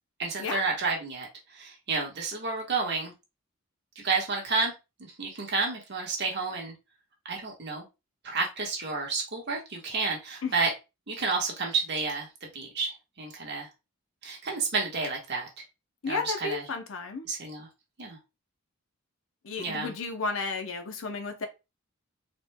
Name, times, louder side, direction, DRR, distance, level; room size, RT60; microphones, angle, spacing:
voice 1, 0.2-1.3 1.5-3.1 4.0-4.7 5.2-6.7 7.2-7.8 8.2-10.7 11.1-12.3 12.5-13.7 14.2-15.5 16.1-16.6 17.3-17.7 18.0-18.2 19.6-19.9, right 4 dB, 50° right, 1.3 m, -30 dB
voice 2, 16.0-17.3 19.4-21.5, left 4 dB, 65° left, 0.7 m, -33 dB
4.2 x 3.2 x 2.2 m
head